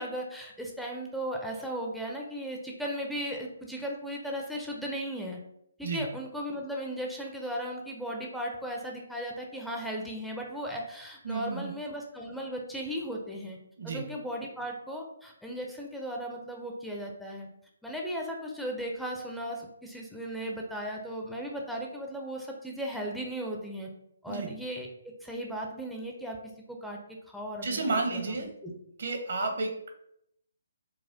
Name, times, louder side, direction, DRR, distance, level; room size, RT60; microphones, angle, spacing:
voice 1, 0.0-5.4 5.8-13.6 13.8-17.5 17.8-23.9 24.2-24.9 25.2-26.4 26.8-27.0 27.3-28.7, equal, ahead, -1 dB, 0.4 m, -36 dB
voice 2, 11.2-11.7 13.8-14.0 24.3-24.5 27.6-28.5 29.0-29.7, right 3 dB, 60° right, 4 dB, 0.7 m, -31 dB
4.0 x 2.2 x 2.6 m, 0.75 s
figure-of-eight pair, 140°, 0 cm